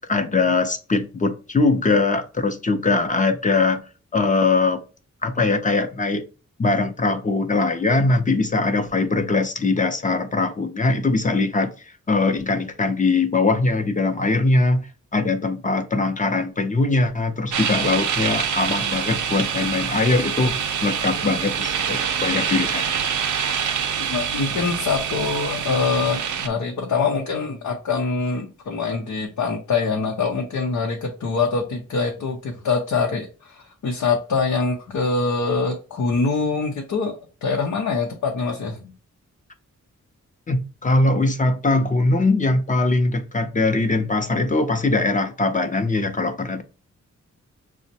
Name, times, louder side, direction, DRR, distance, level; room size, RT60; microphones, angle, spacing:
voice 1, 0.1-3.8 4.1-4.8 5.2-6.2 6.6-11.7 12.1-22.8 40.5-46.6, left 3 dB, 25° left, 0.5 m, -21 dB
sound 1, 17.5-26.5, right 7 dB, 80° right, 0.6 m, -25 dB
voice 2, 24.0-37.1 37.4-38.9, left 4 dB, 90° left, 0.7 m, -24 dB
6.2 x 2.1 x 2.7 m
wide cardioid pair, 125°, 30 cm